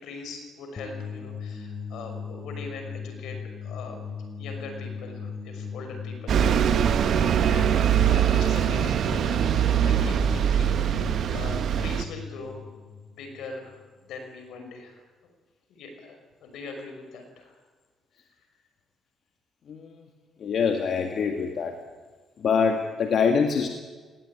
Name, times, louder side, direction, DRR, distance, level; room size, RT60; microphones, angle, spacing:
voice 1, 0.0-4.0 4.4-12.6 13.1-15.0 15.7-17.5, left 3 dB, 80° left, 5 dB, 5.8 m, -41 dB
sound 1, 0.8-13.9, left 6 dB, 35° left, 3.7 m, -38 dB
Bus, 6.3-12.0, right 9 dB, 65° right, 1.2 m, -22 dB
voice 2, 20.4-21.7 22.4-23.7, left 6 dB, 60° left, 4 dB, 1.9 m, -24 dB
19.5 x 17.5 x 9.9 m, 1.4 s
cardioid pair, 90°, 0 cm